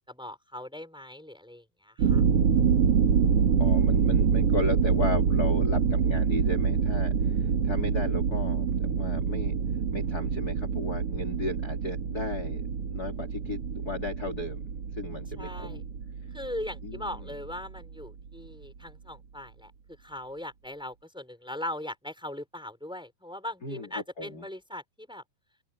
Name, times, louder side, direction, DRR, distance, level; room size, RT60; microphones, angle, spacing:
voice 1, 0.1-2.2 15.4-15.8 16.3-19.7 20.0-25.2, left 1 dB, ahead, 4.9 m, -39 dB
sound 1, 2.0-17.8, right 6 dB, 50° right, 2.5 m, -26 dB
voice 2, 3.6-9.5 9.9-12.6 12.9-14.7 15.0-15.8 16.8-17.3 23.6-24.5, left 3 dB, 25° left, 3.0 m, -35 dB
open air
omnidirectional pair, 4.1 m